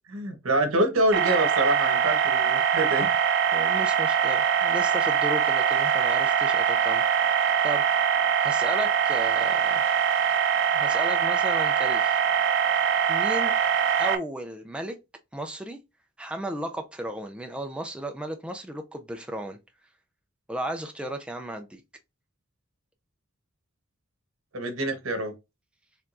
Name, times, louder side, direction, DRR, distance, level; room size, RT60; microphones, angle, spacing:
voice 1, 0.1-3.1 24.5-25.3, right 1 dB, 80° right, 1.2 m, -26 dB
sound 1, 1.1-14.2, right 7 dB, 60° right, 0.6 m, -23 dB
voice 2, 3.5-8.1 8.4-9.8 10.7-12.2 13.1-13.6 14.0-15.0 15.3-15.8 16.2-19.6 20.5-21.8, right 1 dB, 5° right, 0.4 m, -35 dB
4.6 x 3.5 x 2.5 m
head